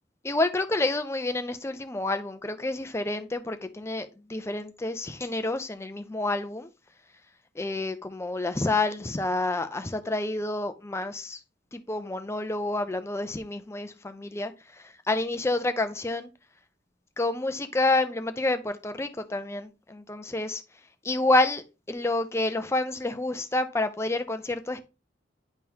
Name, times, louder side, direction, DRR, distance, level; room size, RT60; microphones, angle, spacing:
voice 1, 0.2-6.7 7.6-11.4 11.7-16.3 17.2-20.6 21.0-24.8, left 2 dB, 15° left, 0.5 m, -29 dB
10.0 x 3.7 x 2.8 m
head